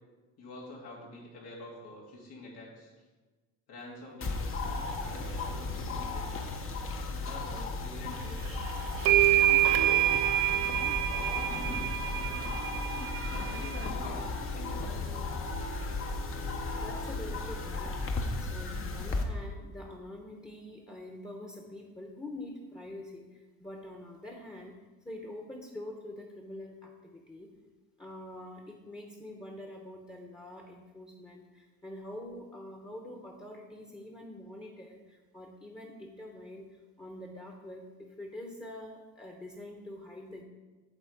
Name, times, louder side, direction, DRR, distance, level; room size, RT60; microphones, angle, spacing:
voice 1, 0.4-2.9 3.7-6.5 7.1-8.4 9.3-13.0 13.2-15.1, left 2 dB, 85° left, -4 dB, 2.8 m, -47 dB
sound 1, 4.2-19.2, left 3 dB, 35° left, 0.9 m, -35 dB
sound 2, 8.4-8.5 9.0-13.9, right 14 dB, 80° right, 0.6 m, -27 dB
sound 3, 8.8-16.9, right 4 dB, 40° right, 0.9 m, -49 dB
voice 2, 16.7-24.8 25.0-27.5 28.0-40.4, left 1 dB, 10° left, 2 dB, 1.0 m, -45 dB
8.3 x 4.2 x 7.0 m, 1.3 s
cardioid pair, 110°, 36 cm